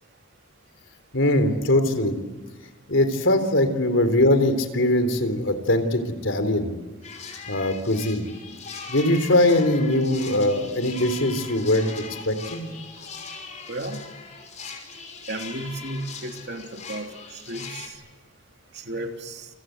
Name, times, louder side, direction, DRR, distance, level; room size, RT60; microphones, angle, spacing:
voice 1, 1.1-2.2 2.9-6.7 7.5-8.2 8.9-12.7, left 1 dB, 75° left, 8 dB, 3.7 m, -21 dB
sound 1, 7.0-17.9, left 5 dB, 35° left, 5.6 m, -40 dB
voice 2, 13.7-14.0 15.3-17.9 18.7-19.5, right 1 dB, 55° right, 4 dB, 3.0 m, -34 dB
29.0 x 26.0 x 7.9 m, 1.2 s
head